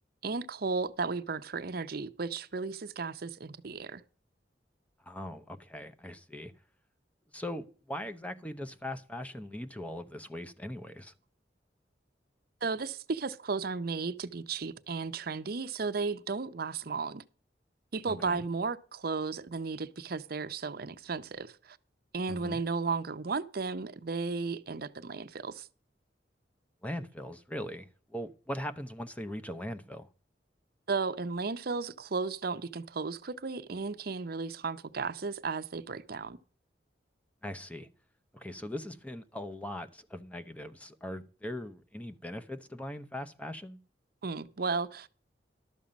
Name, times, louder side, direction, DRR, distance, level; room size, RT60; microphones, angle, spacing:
voice 1, 0.2-4.0 12.6-17.2 17.9-21.8 22.1-25.7 30.9-36.4 44.2-45.1, right 4 dB, 60° right, 0.7 m, -34 dB
voice 2, 5.0-6.5 7.3-11.1 18.1-18.4 22.3-22.6 26.8-30.1 37.4-37.9 38.3-43.8, left 1 dB, 10° left, 0.7 m, -40 dB
12.0 x 7.3 x 5.2 m
head